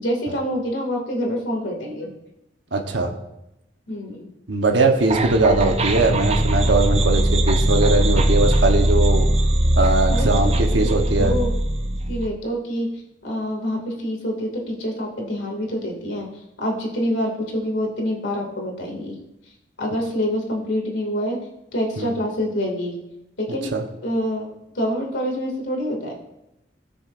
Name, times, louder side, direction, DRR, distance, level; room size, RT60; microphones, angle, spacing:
voice 1, 0.0-2.1 3.9-4.3 10.1-11.5 12.1-16.3 16.6-19.2 19.8-21.4 21.7-22.9 23.4-23.7 24.0-24.5 24.7-26.1, equal, 90° left, 0 dB, 2.4 m, -26 dB
voice 2, 2.7-3.1 4.5-9.3 9.7-11.4 22.0-22.1 23.7-23.8, right 2 dB, 75° right, 3 dB, 1.1 m, -20 dB
sound 1, 5.1-12.3, right 1 dB, 35° right, 0.7 m, -20 dB
17.5 x 6.5 x 2.6 m, 0.89 s
head